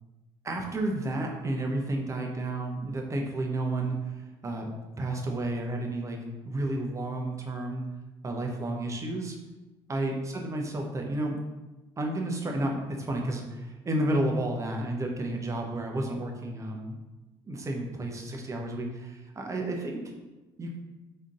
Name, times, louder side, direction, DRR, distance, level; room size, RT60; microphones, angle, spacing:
voice 1, 0.4-4.0 4.4-6.2 6.5-7.8 8.2-9.4 9.9-11.4 12.0-17.0 17.5-20.0 20.6-20.8, right 1 dB, 25° right, 1 dB, 0.8 m, -31 dB
4.2 x 3.6 x 2.5 m, 1.1 s
figure-of-eight pair, 60°, 13 cm